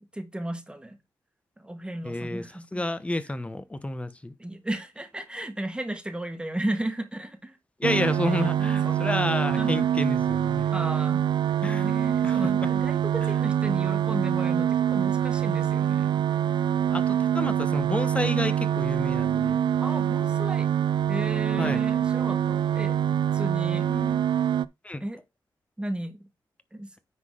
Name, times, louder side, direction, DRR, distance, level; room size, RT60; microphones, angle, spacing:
voice 1, 0.1-1.0 1.6-2.8 4.4-7.6 8.3-8.5 8.8-9.2 9.6-9.9 10.7-11.3 11.8-16.3 19.8-20.7 21.1-23.0 23.3-23.9 25.0-25.2 25.8-26.3 26.7-26.9, right 1 dB, 10° right, 1.5 m, -34 dB
voice 2, 2.0-4.3 7.8-10.7 11.6-11.9 12.2-12.7 16.9-19.6 21.6-21.8 23.7-24.2 24.8-25.0, left 1 dB, 15° left, 0.9 m, -30 dB
sound 1, 7.8-24.7, right 10 dB, 70° right, 0.4 m, -25 dB
9.7 x 3.9 x 4.9 m
cardioid pair, 95°, 8 cm